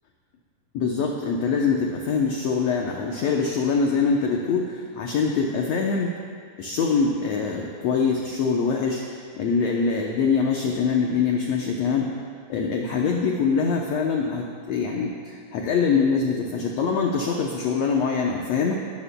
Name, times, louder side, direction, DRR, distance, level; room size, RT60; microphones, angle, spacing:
voice 1, 0.7-6.1 6.6-12.1 12.5-18.7, left 5 dB, 75° left, 0 dB, 1.6 m, -24 dB
18.0 x 13.5 x 2.2 m, 2.1 s
omnidirectional pair, 3.9 m